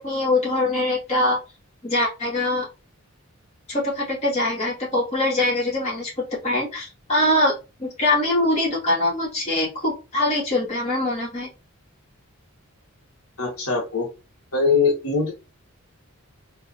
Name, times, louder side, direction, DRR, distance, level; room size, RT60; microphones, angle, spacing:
voice 1, 0.0-1.4 1.8-2.7 3.7-6.1 6.4-7.5 7.8-11.5, left 1 dB, 30° left, -7 dB, 2.3 m, -23 dB
voice 2, 13.4-14.1 14.5-15.3, left 4 dB, 80° left, -2 dB, 1.6 m, -21 dB
4.3 x 3.3 x 2.7 m, 0.29 s
head